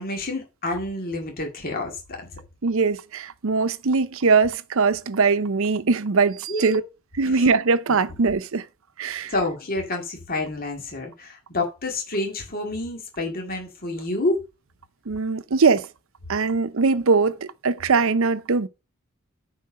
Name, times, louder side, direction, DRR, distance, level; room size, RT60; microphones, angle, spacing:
voice 1, 0.0-2.3 6.5-6.8 7.3-7.4 9.2-14.4, left 2 dB, 45° left, 2.3 m, -28 dB
voice 2, 2.6-6.8 7.2-8.6 9.0-9.3 15.1-15.9 16.3-18.7, right 4 dB, 70° right, 0.7 m, -21 dB
9.6 x 4.7 x 6.3 m
head